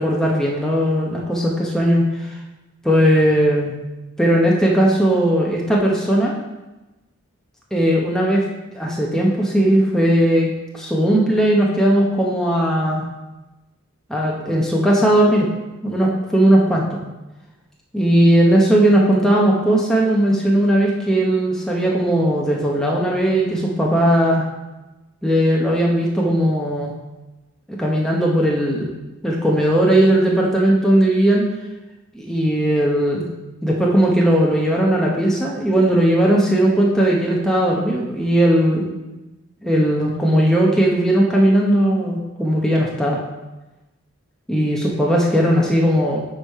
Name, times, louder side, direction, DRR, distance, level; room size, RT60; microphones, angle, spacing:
voice 1, 0.0-2.3 2.8-3.8 4.2-6.3 7.7-8.4 8.7-10.5 10.7-13.0 14.1-15.5 15.8-17.0 17.9-24.5 25.2-26.9 27.7-28.9 29.2-31.5 32.1-33.3 33.6-38.9 39.6-43.2 44.5-46.2, right 1 dB, 5° left, -3 dB, 0.7 m, -17 dB
8.0 x 3.2 x 5.4 m, 1.1 s
head